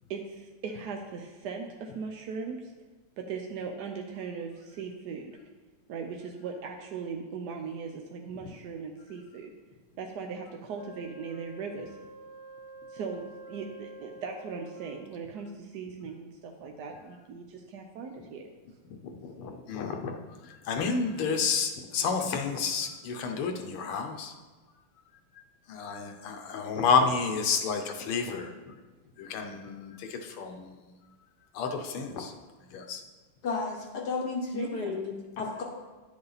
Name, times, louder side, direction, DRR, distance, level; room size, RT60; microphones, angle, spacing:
voice 1, 0.1-2.7 3.2-5.3 5.9-9.5 10.0-11.9 12.9-18.4 34.5-35.0, right 5 dB, 70° right, 2 dB, 1.0 m, -39 dB
Wind instrument woodwind instrument, 10.7-15.4, right 1 dB, 5° right, 1.2 m, -48 dB
voice 2, 19.2-20.2 20.4-24.3 25.7-28.7 29.2-31.0 31.5-32.3 32.7-33.0, left 5 dB, 80° left, 5 dB, 1.7 m, -30 dB
voice 3, 33.4-35.6, left 4 dB, 60° left, 1 dB, 1.2 m, -33 dB
10.5 x 6.8 x 4.0 m, 1.3 s
omnidirectional pair, 2.4 m